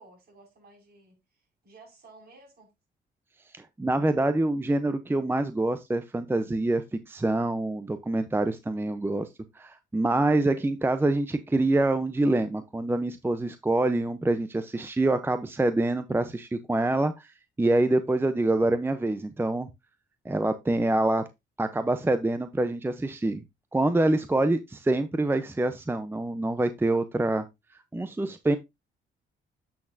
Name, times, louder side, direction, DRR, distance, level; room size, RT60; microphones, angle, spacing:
voice 1, 0.0-2.7, right 3 dB, 50° right, 5.3 m, -54 dB
voice 2, 3.5-9.3 9.5-17.3 17.6-19.7 20.3-21.2 21.6-23.4 23.7-27.4 27.9-28.6, right 2 dB, 10° right, 0.6 m, -26 dB
8.5 x 6.3 x 2.6 m
cardioid pair, 90°, 20 cm